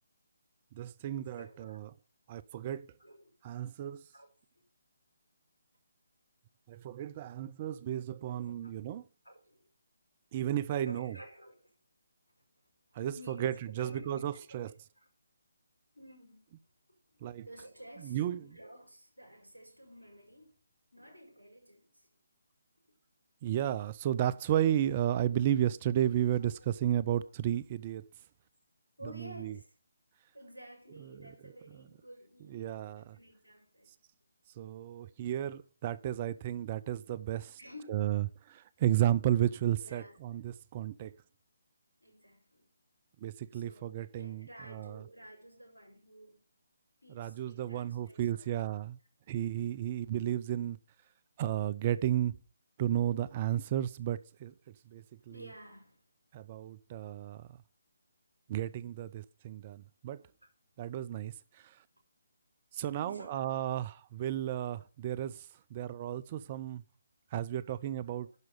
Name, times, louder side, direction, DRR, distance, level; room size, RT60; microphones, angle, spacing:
voice 1, 0.7-1.9 2.3-2.9 3.4-4.1 6.7-9.0 10.3-11.2 12.9-14.7 17.2-17.5 18.0-18.4 23.4-28.1 29.2-29.5 32.5-33.2 34.6-37.6 37.9-41.2 43.2-45.0 47.1-49.0 49.3-50.8 51.4-52.3 52.8-54.5 54.9-55.4 56.3-57.5 58.5-60.2 60.8-61.8 62.7-66.8 67.3-68.3, right 11 dB, 30° right, 0.4 m, -33 dB
voice 2, 1.4-1.8 3.0-3.3 4.1-4.3 8.3-8.8 9.2-9.6 10.7-11.7 12.9-14.6 15.0-15.1 15.9-16.5 17.2-20.6 20.9-22.1 26.4-26.5 27.9-28.0 29.0-29.7 30.3-33.9 37.6-38.3 39.8-40.2 42.0-42.7 43.5-46.4 47.0-48.6 54.9-55.0 55.3-56.0 63.0-63.6 68.2-68.4, equal, 90° left, 5.1 m, -52 dB
10.5 x 6.2 x 6.8 m
figure-of-eight pair, 145°, 0 cm